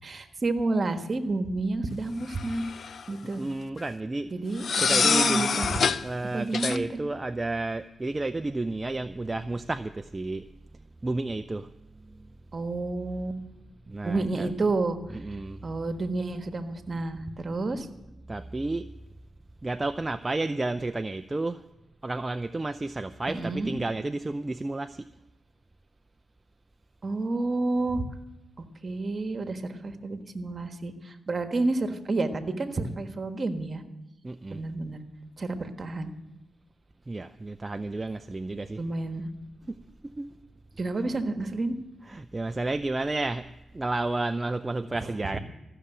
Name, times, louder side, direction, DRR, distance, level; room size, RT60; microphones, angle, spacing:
voice 1, 0.0-2.6 3.1-3.4 4.3-5.8 6.3-7.1 12.5-13.3 14.0-15.0 15.6-17.9 23.3-23.7 27.0-28.0 28.8-33.8 34.5-35.0 35.4-36.1 38.8-39.2 40.8-41.7 45.0-45.1, right 2 dB, 45° right, 7 dB, 1.4 m, -30 dB
sound 1, 2.3-3.0 4.6-6.0 6.5-6.8, left 6 dB, 65° left, 0.6 m, -25 dB
voice 2, 3.2-4.3 4.8-5.6 6.0-10.5 11.0-11.7 12.1-12.3 13.9-14.5 15.1-15.6 18.3-18.9 19.6-21.6 22.0-25.1 34.2-34.6 37.1-38.8 39.6-40.3 40.9-41.0 42.0-43.5 43.7-45.4, right 2 dB, 30° right, 10 dB, 0.5 m, -31 dB
15.0 x 6.8 x 9.0 m, 1.0 s
supercardioid pair, 50°, 0 cm